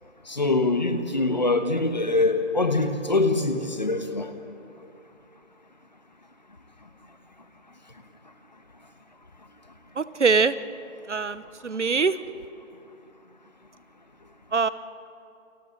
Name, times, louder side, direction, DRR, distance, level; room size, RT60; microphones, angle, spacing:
voice 1, 0.3-4.3, left 2 dB, 35° left, 8 dB, 1.3 m, -24 dB
voice 2, 10.0-10.5 11.1-12.2 14.5-14.7, right 5 dB, 65° right, 15 dB, 1.0 m, -23 dB
29.0 x 28.5 x 3.9 m, 2.6 s
figure-of-eight pair, 180°, 38 cm